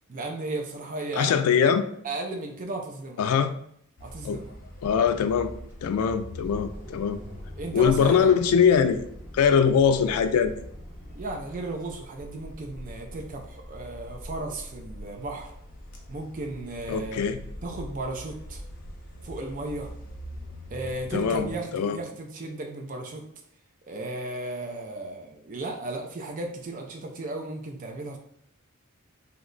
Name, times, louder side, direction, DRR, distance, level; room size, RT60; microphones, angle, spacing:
voice 1, 0.1-1.3 2.0-3.5 4.0-4.6 7.6-8.4 11.1-15.5 16.1-17.2 17.6-18.6 19.2-19.9 20.7-23.2 23.9-28.2, right 2 dB, 40° right, 2 dB, 0.4 m, -35 dB
voice 2, 1.2-1.9 3.2-3.5 4.2-4.4 4.8-5.5 5.8-7.2 7.7-9.0 9.3-10.5 16.9-17.4 21.1-22.0, left 7 dB, 90° left, 11 dB, 0.3 m, -22 dB
llegada coches, 4.0-21.6, equal, 40° left, 0.6 m, -43 dB
sound 1, 5.7-11.2, left 1 dB, 10° right, 1.0 m, -46 dB
2.8 x 2.1 x 3.8 m, 0.69 s
head